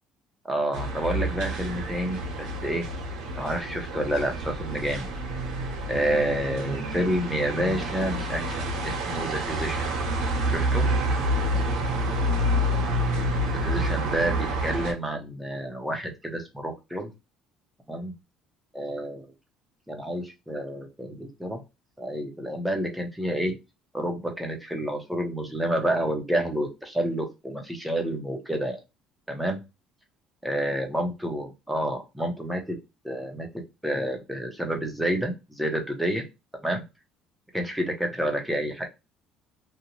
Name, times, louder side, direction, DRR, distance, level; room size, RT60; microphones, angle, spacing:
voice 1, 0.5-2.9 3.4-5.1 5.9-9.9 10.5-10.9 13.5-17.1 17.9-18.1 18.7-19.3 19.9-21.6 22.0-23.6 23.9-28.8 29.3-29.6 30.4-32.8 33.0-33.5 33.8-36.3 36.6-36.8 37.5-38.8, right 1 dB, 5° right, 3 dB, 0.7 m, -29 dB
sound 1, 0.7-14.9, right 1 dB, 75° right, 0.9 m, -28 dB
2.5 x 2.1 x 3.0 m, 0.24 s
cardioid pair, 130°, 0 cm